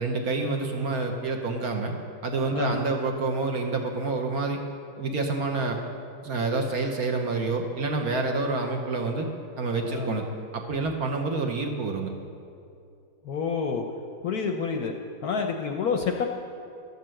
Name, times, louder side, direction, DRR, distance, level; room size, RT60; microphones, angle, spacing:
voice 1, 0.0-1.9 2.2-4.6 5.0-5.8 6.2-9.3 9.6-10.2 10.5-12.1, right 3 dB, 55° right, 3 dB, 1.3 m, -28 dB
voice 2, 9.8-10.2 13.2-13.8 14.2-14.9 15.2-16.3, left 5 dB, 65° left, 4 dB, 1.0 m, -28 dB
12.5 x 6.8 x 7.6 m, 2.5 s
omnidirectional pair, 2.1 m